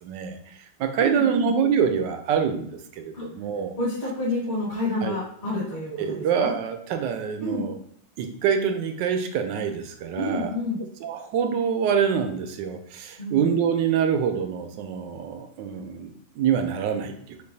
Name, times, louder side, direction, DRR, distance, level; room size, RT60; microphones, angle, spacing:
voice 1, 0.0-3.8 5.0-5.2 5.9-7.8 8.2-10.5 11.0-17.4, right 7 dB, 75° right, 6 dB, 1.1 m, -26 dB
voice 2, 1.0-1.5 3.1-3.2 3.8-6.5 7.4-7.7 10.2-10.8 13.2-13.4, left 1 dB, 30° left, -9 dB, 1.7 m, -29 dB
6.4 x 2.6 x 2.7 m, 0.66 s
omnidirectional pair, 2.2 m